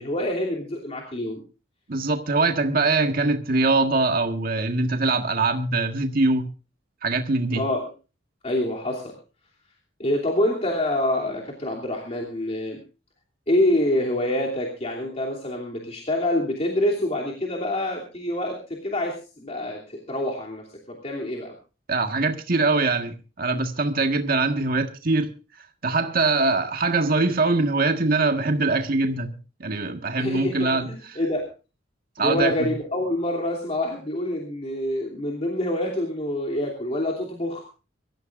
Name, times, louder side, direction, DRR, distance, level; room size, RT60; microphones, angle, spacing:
voice 1, 0.0-1.4 7.5-7.8 8.4-9.1 10.0-12.8 13.5-21.6 30.2-31.5 32.2-37.6, left 1 dB, 35° left, 2.9 m, -26 dB
voice 2, 1.9-6.5 7.0-7.6 21.9-25.3 25.8-30.9 32.2-32.7, right 3 dB, 50° right, 1.6 m, -23 dB
24.5 x 14.0 x 2.5 m
head